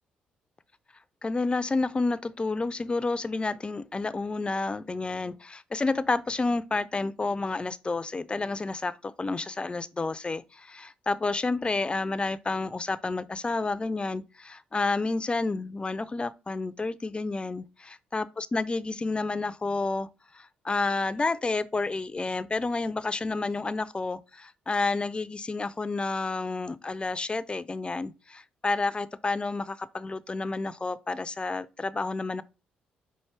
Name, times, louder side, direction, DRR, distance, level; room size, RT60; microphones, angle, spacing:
voice 1, 1.2-17.6 18.1-20.1 20.3-32.4, left 3 dB, 25° left, 0.4 m, -30 dB
5.7 x 2.6 x 3.2 m
hypercardioid pair, 45°, 4 cm